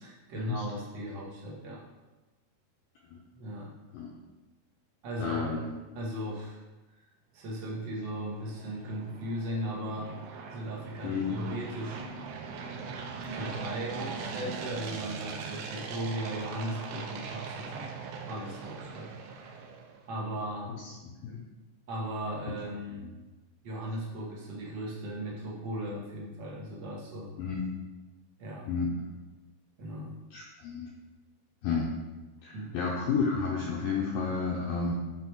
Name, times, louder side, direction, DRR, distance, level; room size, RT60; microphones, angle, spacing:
voice 1, 0.0-1.8 3.3-3.7 5.0-5.5 5.9-6.6 7.3-12.0 13.3-17.9 18.2-19.6 20.1-20.7 21.9-23.1 23.6-27.3 28.4-28.7 29.8-30.1 32.5-32.7, right 1 dB, 60° right, -5 dB, 1.1 m, -37 dB
voice 2, 5.2-5.7 11.0-11.4 20.7-20.9 21.2-21.4 23.0-23.1 27.4-27.7 28.7-28.9 30.3-30.9 31.6-31.9 32.4-34.9, left 5 dB, 80° left, -2 dB, 2.1 m, -31 dB
sound 1, 7.7-20.0, right 5 dB, 90° right, 3.0 m, -41 dB
10.0 x 4.3 x 4.7 m, 1.2 s
omnidirectional pair, 5.1 m